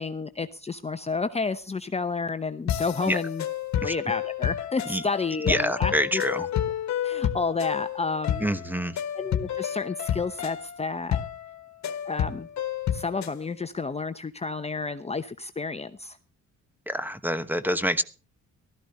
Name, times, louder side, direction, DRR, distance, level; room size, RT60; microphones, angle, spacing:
voice 1, 0.0-3.5 3.8-6.5 7.0-8.5 9.1-11.2 11.8-12.5 12.9-16.2, left 4 dB, 20° left, 0.8 m, -31 dB
sound 1, 2.7-13.4, left 10 dB, 65° left, 1.5 m, -30 dB
voice 2, 5.5-6.4 8.4-8.9 16.9-18.0, equal, 5° right, 1.1 m, -26 dB
15.0 x 13.5 x 4.2 m
cardioid pair, 90°, 30 cm